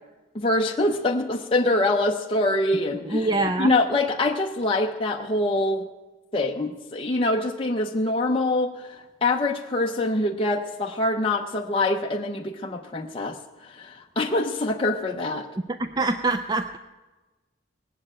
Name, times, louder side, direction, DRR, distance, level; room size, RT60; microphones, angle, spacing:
voice 1, 0.3-3.3 3.6-5.9 6.3-15.5, left 2 dB, 25° left, 1 dB, 0.6 m, -25 dB
voice 2, 3.0-3.7 15.7-16.8, right 2 dB, 20° right, 9 dB, 0.4 m, -25 dB
19.0 x 7.5 x 8.7 m, 1.2 s
head